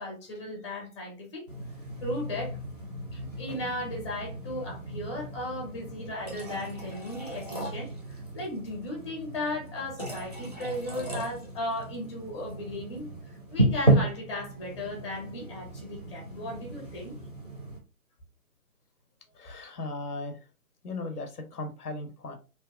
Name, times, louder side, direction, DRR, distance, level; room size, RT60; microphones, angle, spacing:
voice 1, 0.0-1.4 2.0-2.6 3.1-17.2, left 1 dB, 20° left, 0 dB, 0.7 m, -36 dB
sound 1, 1.5-17.8, right 1 dB, 30° right, 0.4 m, -33 dB
voice 2, 19.3-20.4 20.8-22.4, left 2 dB, 80° left, 7 dB, 0.7 m, -37 dB
2.7 x 2.3 x 2.2 m, 0.31 s
figure-of-eight pair, 145°, 45 cm